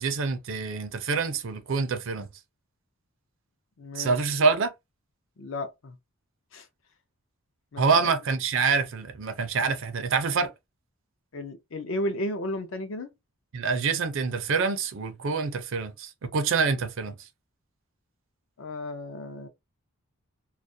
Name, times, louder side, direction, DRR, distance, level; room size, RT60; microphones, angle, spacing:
voice 1, 0.0-2.3 3.9-4.7 7.8-10.5 13.5-17.1, right 4 dB, 60° right, 0.4 m, -26 dB
voice 2, 3.8-4.1 5.4-6.0 6.5-6.7 7.7-8.1 11.3-13.1 18.6-19.5, left 1 dB, 60° left, 0.5 m, -33 dB
2.3 x 2.0 x 2.6 m
head